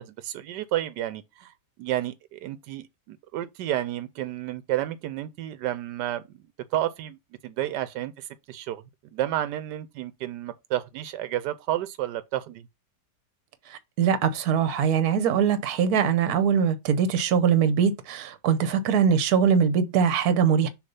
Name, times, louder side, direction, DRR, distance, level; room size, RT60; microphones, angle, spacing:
voice 1, 0.0-1.5 1.8-6.4 6.7-7.2 7.4-8.8 9.1-12.7, right 13 dB, 90° right, 1.2 m, -31 dB
voice 2, 13.7-20.7, right 7 dB, 65° right, 1.2 m, -22 dB
6.6 x 3.0 x 5.3 m
omnidirectional pair, 1.8 m